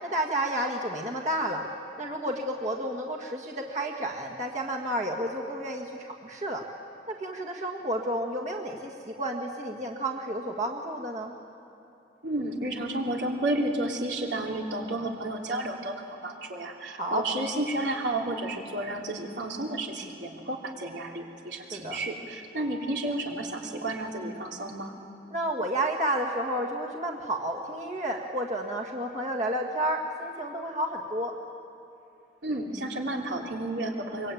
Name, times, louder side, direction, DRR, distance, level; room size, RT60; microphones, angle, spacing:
voice 1, 0.0-1.6 2.0-6.6 7.1-11.3 17.0-17.2 21.7-22.0 25.3-31.3, right 1 dB, 40° right, 0 dB, 1.7 m, -31 dB
voice 2, 12.2-24.9 32.4-34.3, right 1 dB, 85° right, 0 dB, 3.2 m, -32 dB
24.5 x 23.5 x 9.2 m, 2.8 s
head